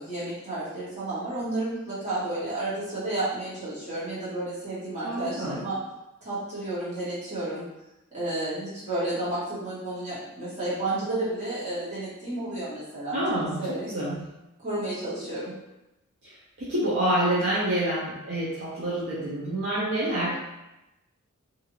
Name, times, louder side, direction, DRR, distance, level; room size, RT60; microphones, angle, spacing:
voice 1, 0.0-5.8 6.2-7.6 8.1-13.9 14.6-15.5, right 2 dB, 30° right, -11 dB, 1.4 m, -31 dB
voice 2, 5.0-5.6 13.1-13.6 13.9-14.2 16.2-20.4, right 1 dB, 55° right, -8 dB, 0.5 m, -27 dB
2.6 x 2.4 x 2.9 m, 0.93 s
head